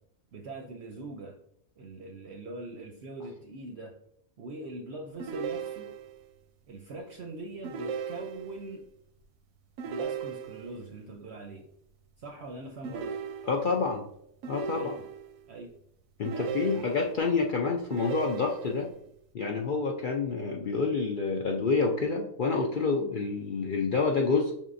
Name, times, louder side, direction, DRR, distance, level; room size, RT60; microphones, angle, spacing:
voice 1, 0.3-1.4 1.8-3.9 4.4-5.9 6.7-8.8 9.8-11.7 12.2-13.1 14.7-15.1 15.5-15.7 16.3-17.1, right 2 dB, 65° right, 2 dB, 0.8 m, -42 dB
sound 1, 5.2-6.2 7.6-8.7 9.8-10.8 12.8-13.8 14.4-15.4 16.2-17.3 17.9-18.9, right 6 dB, 90° right, 1.0 m, -37 dB
voice 2, 13.4-14.1 14.5-14.9 16.2-18.9 19.3-24.5, left 4 dB, 60° left, 0 dB, 0.5 m, -28 dB
5.9 x 3.6 x 2.5 m, 0.72 s
omnidirectional pair, 1.4 m